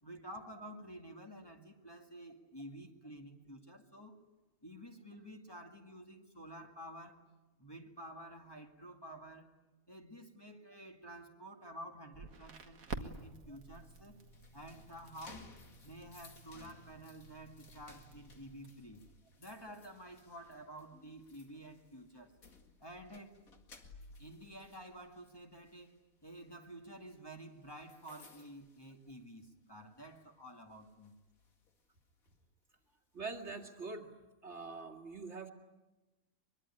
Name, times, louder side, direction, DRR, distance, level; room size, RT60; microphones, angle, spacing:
voice 1, 0.0-4.2 4.6-7.2 7.6-9.6 9.9-14.2 14.5-15.6 15.8-19.0 19.4-22.3 22.8-23.4 24.2-31.1, right 1 dB, 15° left, 1 dB, 2.2 m, -51 dB
Crackle, 12.1-18.7, right 4 dB, 85° right, 2.1 m, -50 dB
sound 1, 13.7-29.6 29.9-30.2 30.7-32.4, left 3 dB, 90° left, 2.6 m, -60 dB
voice 2, 33.1-34.1 34.4-35.5, right 4 dB, 55° right, 4 dB, 2.4 m, -44 dB
24.0 x 23.0 x 10.0 m, 1.1 s
omnidirectional pair, 1.4 m